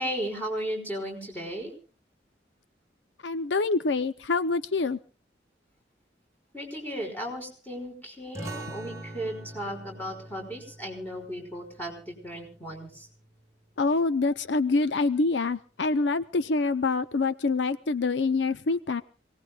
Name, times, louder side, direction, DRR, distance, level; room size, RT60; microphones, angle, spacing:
voice 1, 0.0-1.7 6.5-13.1, equal, 10° left, 1 dB, 5.6 m, -35 dB
voice 2, 3.2-5.0 13.8-19.0, left 3 dB, 80° left, 12 dB, 0.7 m, -26 dB
sound 1, 8.3-13.5, right 2 dB, 15° right, 1.5 m, -44 dB
27.0 x 19.0 x 2.4 m, 0.38 s
head